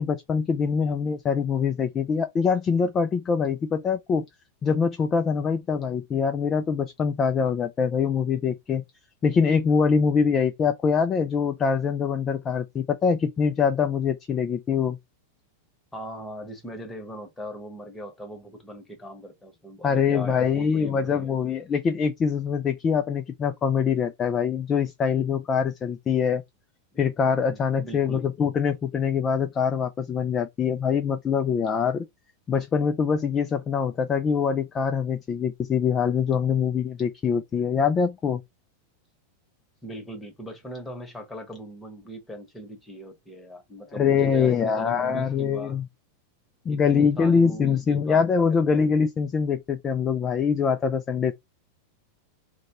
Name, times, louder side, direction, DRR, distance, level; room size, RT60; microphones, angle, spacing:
voice 1, 0.0-4.2 4.6-8.8 9.2-15.0 19.8-26.4 27.0-32.1 32.5-38.4 43.9-45.9 46.7-51.3, left 6 dB, 25° left, 0.3 m, -24 dB
voice 2, 15.9-21.4 27.5-28.2 39.8-45.8 46.7-48.2 48.7-48.8, equal, 10° left, 1.1 m, -39 dB
2.8 x 2.2 x 2.9 m
figure-of-eight pair, 90°, 0 cm